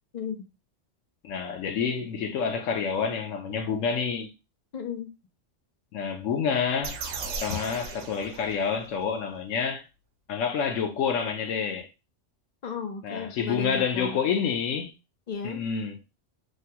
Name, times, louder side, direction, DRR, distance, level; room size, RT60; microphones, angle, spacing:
voice 1, 0.1-0.4 4.7-5.1 12.6-14.2 15.3-15.6, left 6 dB, 50° left, 0.5 m, -34 dB
voice 2, 1.2-4.3 5.9-7.0 7.4-9.8 10.3-11.9 13.0-14.9 15.4-16.0, left 6 dB, 90° left, 1.0 m, -28 dB
sound 1, 6.8-9.0, right 4 dB, 85° right, 0.9 m, -37 dB
3.3 x 2.2 x 2.8 m
omnidirectional pair, 1.3 m